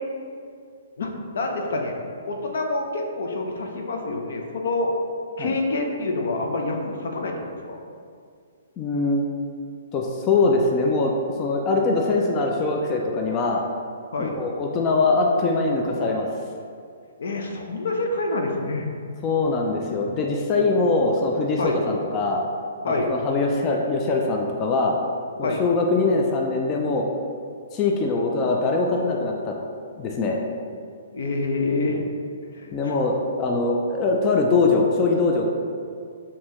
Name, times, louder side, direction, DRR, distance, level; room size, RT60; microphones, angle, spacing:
voice 1, 1.0-1.9 2.3-4.9 5.4-7.4 7.7-7.8 14.1-14.4 17.2-18.9 21.6-21.8 22.8-23.1 25.4-25.7 31.1-32.0 32.5-33.0, left 2 dB, 70° left, 2 dB, 0.6 m, -27 dB
voice 2, 8.8-9.3 9.9-11.1 11.4-13.6 14.2-16.3 19.2-22.4 22.8-25.0 25.4-27.0 27.7-29.5 30.0-30.4 32.7-35.5, left 3 dB, 30° left, 0 dB, 0.4 m, -22 dB
5.3 x 2.8 x 3.0 m, 2.3 s
hypercardioid pair, 135°, 0 cm